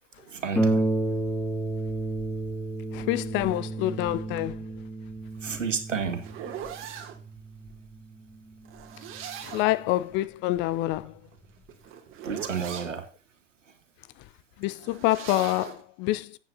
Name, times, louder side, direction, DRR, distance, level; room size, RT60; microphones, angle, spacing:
voice 1, 0.2-0.8 5.4-6.3 12.2-13.1, right 6 dB, 80° right, 2.1 m, -31 dB
Harp, 0.6-9.7 10.6-10.7 11.1-11.2, right 2 dB, 5° left, 2.0 m, -31 dB
voice 2, 2.9-4.7 9.4-11.1 14.6-16.4, left 16 dB, 30° left, 0.5 m, -27 dB
sound 1, 5.4-7.2 8.6-9.8 11.2-13.0 14.7-15.8, right 8 dB, 35° right, 2.7 m, -40 dB
14.5 x 9.0 x 2.8 m
figure-of-eight pair, 95°, 37 cm